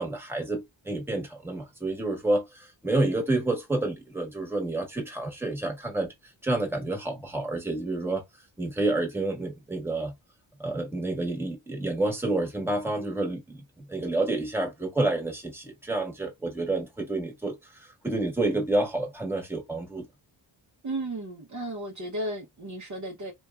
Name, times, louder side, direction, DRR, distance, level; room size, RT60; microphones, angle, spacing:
voice 1, 0.0-6.1 6.4-8.2 8.6-10.1 10.6-13.6 13.9-20.1, right 2 dB, 5° right, 1.0 m, -29 dB
voice 2, 20.8-23.3, right 1 dB, 40° right, 0.6 m, -34 dB
2.8 x 2.3 x 2.2 m
wide cardioid pair, 120°, 48 cm